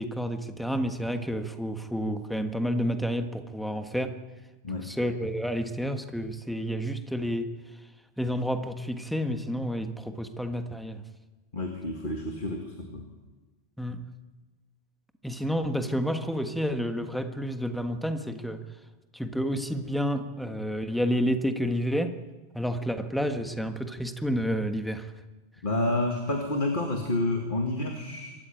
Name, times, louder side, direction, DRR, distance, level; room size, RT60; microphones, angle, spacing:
voice 1, 0.0-4.1 4.8-7.5 8.2-11.0 13.8-14.1 15.2-18.6 19.1-22.2 22.5-25.1, equal, ahead, 7 dB, 1.4 m, -30 dB
voice 2, 11.5-13.0 25.6-28.3, left 2 dB, 50° left, 2 dB, 2.3 m, -29 dB
25.5 x 14.0 x 9.2 m, 1.2 s
omnidirectional pair, 1.1 m